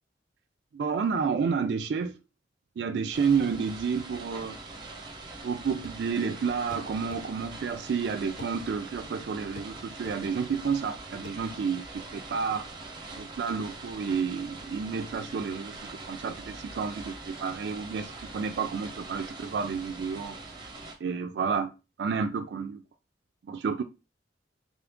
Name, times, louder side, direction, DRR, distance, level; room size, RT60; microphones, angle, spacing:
voice 1, 0.7-2.2 2.8-4.6 5.4-11.9 12.1-12.6 13.1-20.4 21.0-21.7 22.0-22.8 23.5-23.8, right 6 dB, 70° right, 0.3 m, -30 dB
sound 1, 3.1-20.9, right 3 dB, 25° right, 0.7 m, -43 dB
sound 2, 5.8-6.1 6.7-7.3 8.4-8.6 9.6-9.7 10.1-10.2 11.3-11.4, left 3 dB, 50° left, 0.4 m, -45 dB
3.7 x 2.5 x 3.5 m
head